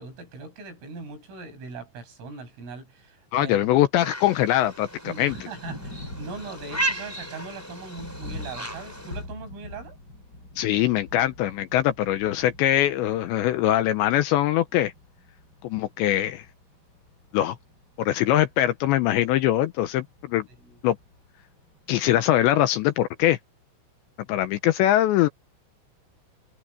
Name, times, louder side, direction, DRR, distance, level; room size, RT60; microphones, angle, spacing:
voice 1, 0.0-3.9 5.0-10.0 20.6-20.8, right 4 dB, 80° right, 9.6 m, -40 dB
voice 2, 3.3-5.4 10.6-14.9 15.6-16.5 17.3-17.6 18.0-20.5 20.8-21.0 21.9-23.4 24.3-25.3, left 13 dB, 75° left, 2.8 m, -22 dB
sound 1, 3.9-9.2, right 2 dB, 5° left, 4.0 m, -35 dB
Thunder, 4.5-22.4, left 2 dB, 20° left, 7.7 m, -45 dB
omnidirectional pair, 5.8 m